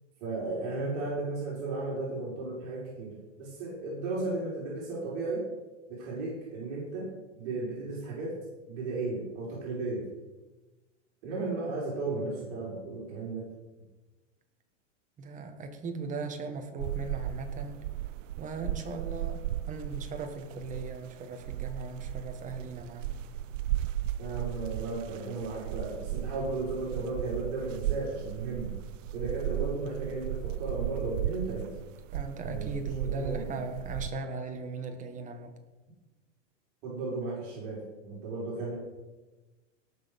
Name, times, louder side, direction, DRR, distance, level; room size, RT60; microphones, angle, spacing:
voice 1, 0.2-3.1 3.4-5.4 5.9-7.1 7.4-8.4 8.7-10.0 11.2-13.4 24.2-28.7 29.1-31.7 32.4-32.7 33.0-33.5 36.8-38.7, right 3 dB, 50° right, -5 dB, 5.0 m, -35 dB
voice 2, 15.2-17.8 18.4-23.2 32.1-35.5, right 3 dB, 20° right, 5 dB, 1.5 m, -38 dB
sound 1, 16.8-34.1, right 13 dB, 85° right, 0.5 m, -36 dB
18.0 x 6.6 x 5.3 m, 1.2 s
supercardioid pair, 145°, 37 cm